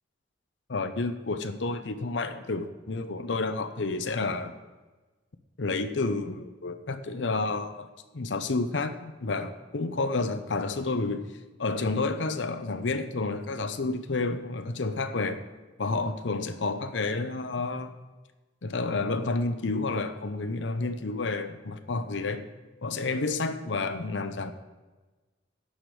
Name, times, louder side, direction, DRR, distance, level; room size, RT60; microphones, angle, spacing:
voice 1, 0.7-4.5 5.6-7.8 8.1-11.3 11.6-15.4 15.8-17.9 18.6-22.5 22.8-24.5, left 3 dB, 85° left, 9 dB, 0.8 m, -30 dB
11.5 x 5.0 x 7.6 m, 1.2 s
head